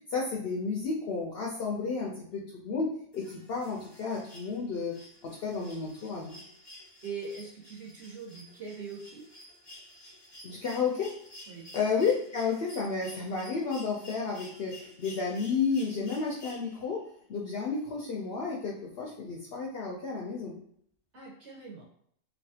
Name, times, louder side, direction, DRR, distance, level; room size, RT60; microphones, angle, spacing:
voice 1, 0.1-4.9 5.2-6.4 10.4-11.1 11.7-17.0 17.3-20.6, left 5 dB, 65° left, -2 dB, 0.6 m, -32 dB
sound 1, 3.1-17.0 18.5-18.6, left 1 dB, 25° left, 0.7 m, -51 dB
voice 2, 7.0-9.2 11.5-11.7 21.1-21.8, right 5 dB, 55° right, -5 dB, 1.4 m, -42 dB
3.1 x 2.4 x 2.7 m, 0.66 s
omnidirectional pair, 1.4 m